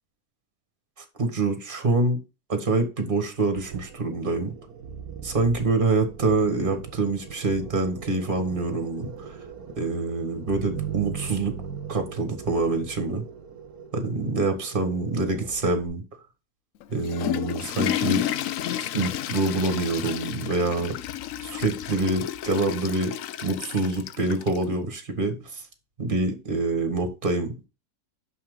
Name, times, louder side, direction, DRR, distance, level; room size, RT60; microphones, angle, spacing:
voice 1, 1.2-2.2 2.5-4.5 5.2-9.4 9.8-11.6 11.9-13.3 13.9-16.0 16.9-18.3 18.8-21.0 21.4-23.2 23.4-25.6 26.0-27.7, right 3 dB, 30° right, 1.8 m, -26 dB
sound 1, 3.6-15.9, right 7 dB, 65° right, 1.4 m, -39 dB
Water / Toilet flush, 16.8-24.6, left 12 dB, 65° left, 0.8 m, -31 dB
6.4 x 5.8 x 3.8 m
omnidirectional pair, 1.7 m